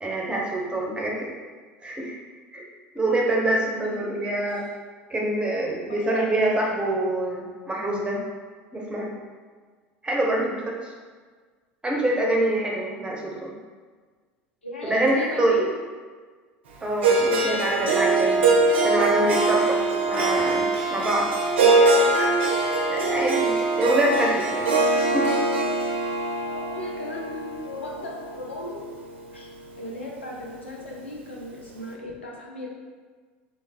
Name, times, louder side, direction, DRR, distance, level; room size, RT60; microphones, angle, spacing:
voice 1, 0.0-1.3 1.8-2.2 2.5-2.6 2.9-4.6 5.1-8.2 8.7-9.1 10.0-10.9 11.8-13.5 14.8-15.6 16.8-18.5 18.8-20.6 20.9-21.3 22.1-22.3 22.9-24.7 25.1-25.3, right 1 dB, 15° right, -2 dB, 1.0 m, -25 dB
voice 2, 5.9-6.3 14.6-15.7 18.7-18.9 21.6-21.9 26.4-28.8 29.3-29.5 29.8-32.7, left 1 dB, 90° left, -2 dB, 0.8 m, -36 dB
Harp, 17.0-29.2, right 3 dB, 80° right, 0.6 m, -22 dB
3.7 x 2.9 x 4.4 m, 1.5 s
hypercardioid pair, 75°, 6 cm